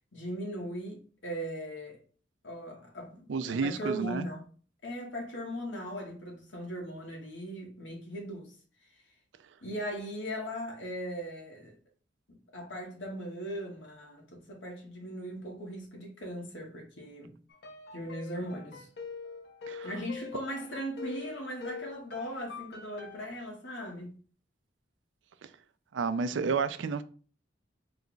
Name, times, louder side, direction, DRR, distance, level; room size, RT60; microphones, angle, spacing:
voice 1, 0.1-2.0 2.4-4.4 4.8-8.5 9.6-11.7 12.5-17.3 17.9-18.9 19.8-24.2, equal, 85° left, 1.4 m, -39 dB
voice 2, 3.3-4.3 19.7-19.9 25.9-27.0, right 5 dB, 85° right, 0.4 m, -31 dB
sound 1, 17.5-23.3, left 5 dB, 65° left, 0.7 m, -44 dB
4.1 x 2.3 x 3.8 m
head